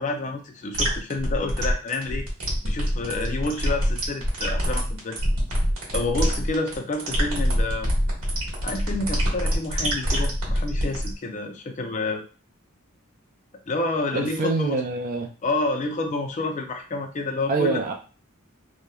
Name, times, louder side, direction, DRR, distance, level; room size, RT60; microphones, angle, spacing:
voice 1, 0.0-2.3 2.6-5.2 5.9-7.9 8.6-12.2 13.7-14.8 15.4-17.8, left 2 dB, 35° left, 3 dB, 0.4 m, -29 dB
sound 1, 0.7-11.1, equal, 85° right, 1.1 m, -25 dB
voice 2, 14.1-15.3 17.5-17.9, right 3 dB, 40° right, 4 dB, 0.4 m, -25 dB
2.9 x 2.0 x 2.2 m, 0.37 s
head